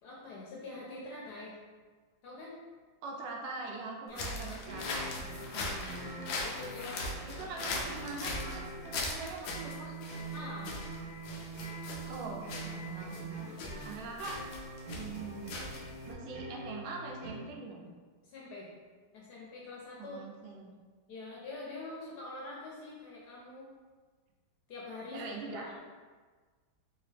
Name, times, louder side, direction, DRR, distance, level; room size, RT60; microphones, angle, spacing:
voice 1, 0.0-1.5 2.2-2.6 4.1-4.3 5.2-5.6 6.4-7.7 10.3-10.8 13.5-13.7 18.2-18.7 19.1-20.2 21.1-23.7 24.7-25.8, left 2 dB, 70° left, -4 dB, 1.0 m, -45 dB
voice 2, 3.0-5.2 5.5-6.2 7.3-9.9 12.1-14.4 14.9-15.7 16.1-17.9 20.0-20.7 25.1-25.7, right 3 dB, 80° right, -1 dB, 1.4 m, -43 dB
sound 1, 4.1-16.1, left 2 dB, 90° left, 0.8 m, -40 dB
sound 2, 4.6-17.4, right 2 dB, 50° right, 1.2 m, -44 dB
3.4 x 2.9 x 3.2 m, 1.4 s
omnidirectional pair, 2.2 m